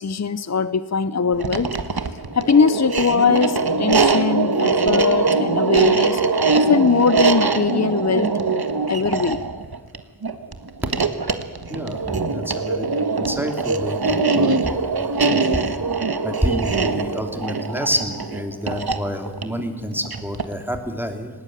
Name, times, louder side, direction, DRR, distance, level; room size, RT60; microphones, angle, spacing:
voice 1, 0.0-1.8 2.3-6.2 6.5-8.3 8.9-9.4, left 5 dB, 45° left, 15 dB, 0.7 m, -20 dB
sound 1, 1.3-20.6, right 4 dB, 70° right, 1.5 m, -22 dB
voice 2, 11.7-12.9 13.2-14.7 15.0-15.4 16.2-21.3, equal, 5° right, 5 dB, 3.0 m, -28 dB
19.5 x 17.5 x 9.3 m, 1.4 s
wide cardioid pair, 55°, 38 cm